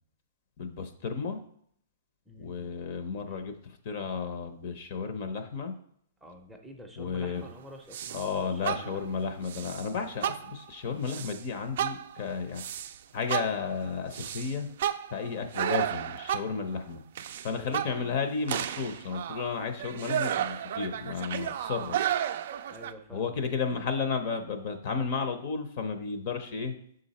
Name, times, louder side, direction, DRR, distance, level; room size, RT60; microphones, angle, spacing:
voice 1, 0.6-1.4 2.4-3.5 3.8-5.7 7.0-7.5 8.1-12.6 13.1-14.7 15.1-17.0 17.4-22.0 23.1-26.7, left 5 dB, 45° left, 8 dB, 0.7 m, -33 dB
voice 2, 2.3-2.7 3.3-3.4 6.2-9.2 17.5-18.2 22.7-23.4, equal, 5° right, 1 dB, 0.6 m, -48 dB
sound 1, 7.9-8.3 8.6-9.1 9.5-9.9 10.2-10.7 11.1-11.4 11.8-13.0 13.3-16.7 17.1-18.2 18.5-22.9, right 10 dB, 55° right, 0.3 m, -33 dB
6.2 x 3.9 x 4.2 m, 0.66 s
hypercardioid pair, 150°, 0 cm